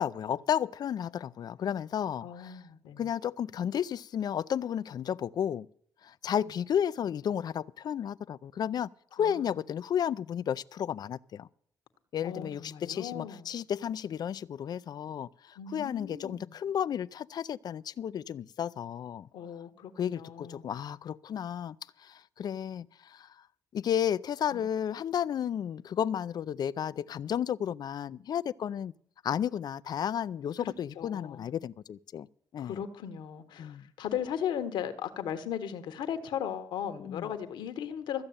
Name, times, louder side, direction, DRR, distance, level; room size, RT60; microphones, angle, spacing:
voice 1, 0.0-2.6 3.0-5.7 6.0-11.5 12.1-19.3 20.0-23.3 23.7-28.9 29.2-32.3 32.5-32.8 33.6-33.8 37.0-37.3, left 9 dB, 60° left, 0.5 m, -33 dB
voice 2, 2.2-3.1 6.4-6.5 9.2-9.5 12.2-13.5 15.6-16.5 19.3-20.6 24.5-24.6 30.6-31.5 32.6-38.2, left 9 dB, 80° left, 1.3 m, -37 dB
14.5 x 6.5 x 8.8 m
supercardioid pair, 60°, 8 cm